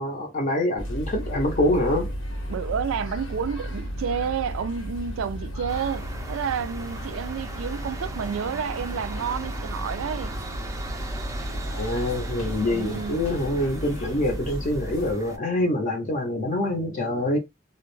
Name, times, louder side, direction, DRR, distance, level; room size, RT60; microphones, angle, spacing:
voice 1, 0.0-2.1 11.7-17.4, left 1 dB, 40° left, 0.5 m, -25 dB
sound 1, 0.8-15.1, equal, 90° left, 0.9 m, -34 dB
voice 2, 2.5-10.3 12.7-13.2, right 7 dB, 90° right, 0.3 m, -30 dB
sound 2, 5.7-15.4, right 2 dB, 15° right, 0.4 m, -39 dB
2.2 x 2.0 x 3.0 m
head